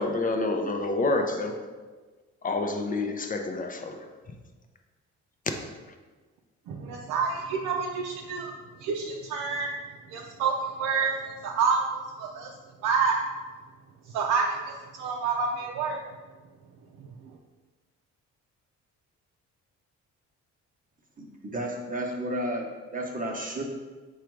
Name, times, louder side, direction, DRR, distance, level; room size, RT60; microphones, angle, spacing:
voice 1, 0.0-1.6 2.4-4.4, left 2 dB, 30° left, 5 dB, 0.5 m, -28 dB
voice 2, 6.7-8.5 8.8-9.7 10.1-11.1 11.4-12.5 12.8-13.2 14.1-16.0 17.3-17.4, right 5 dB, 85° right, 0 dB, 0.5 m, -28 dB
voice 3, 21.2-23.6, right 1 dB, 25° right, 0 dB, 0.8 m, -32 dB
4.9 x 2.3 x 4.4 m, 1.3 s
cardioid pair, 90°, 30 cm